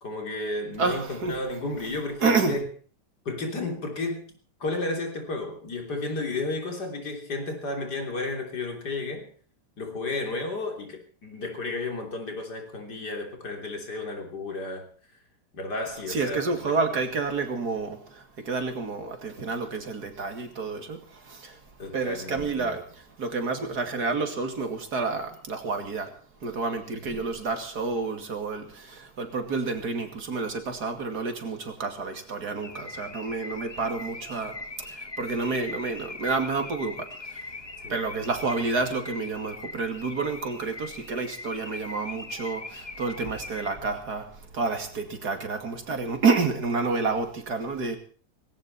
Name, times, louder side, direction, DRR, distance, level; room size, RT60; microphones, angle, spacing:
voice 1, 0.0-2.7 3.3-4.3 4.6-9.3 9.8-14.9 15.5-16.8 21.8-22.8 26.9-27.2 37.8-38.0, left 2 dB, 80° left, 3.9 m, -33 dB
voice 2, 0.8-1.4 2.2-2.6 16.1-17.9 18.5-20.8 21.9-22.8 23.2-26.0 26.4-28.6 29.2-34.5 35.2-36.9 37.9-42.6 43.0-44.2 44.6-48.0, right 4 dB, 70° right, 2.9 m, -29 dB
Car / Alarm, 32.6-43.8, left 3 dB, 25° left, 0.9 m, -41 dB
19.0 x 17.0 x 4.2 m
omnidirectional pair, 1.7 m